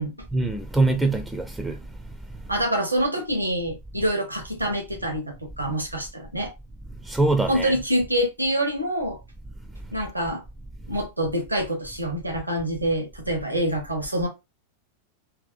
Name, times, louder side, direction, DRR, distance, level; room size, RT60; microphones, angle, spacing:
voice 1, 0.3-1.8 7.0-7.7, right 2 dB, 5° right, 0.4 m, -23 dB
voice 2, 2.5-6.5 7.5-9.2 9.9-10.4 10.9-14.3, right 1 dB, 85° right, 0.8 m, -26 dB
2.7 x 2.1 x 3.9 m
figure-of-eight pair, 90°, 0 cm